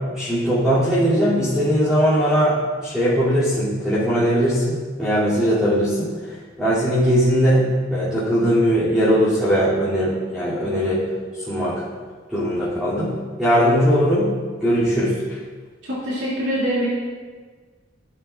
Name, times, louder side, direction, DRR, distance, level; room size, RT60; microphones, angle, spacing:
voice 1, 0.1-6.1 6.6-11.0 11.4-11.7 12.3-13.1 13.4-14.3 14.6-15.4, equal, 5° right, -15 dB, 2.7 m, -19 dB
voice 2, 15.8-16.9, equal, 85° right, -9 dB, 2.5 m, -24 dB
14.5 x 7.1 x 2.5 m, 1.5 s
head